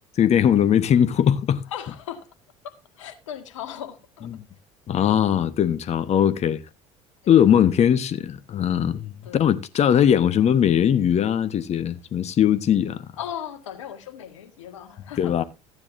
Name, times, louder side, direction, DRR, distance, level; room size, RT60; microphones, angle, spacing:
voice 1, 0.1-1.6 4.3-4.4 4.9-6.6 7.3-13.0 15.2-15.4, left 9 dB, 45° left, 1.2 m, -20 dB
voice 2, 1.7-2.3 2.6-4.3 7.2-7.4 9.2-9.4 13.2-15.4, left 9 dB, 85° left, 1.8 m, -37 dB
14.5 x 9.7 x 2.7 m
hypercardioid pair, 70°, 16 cm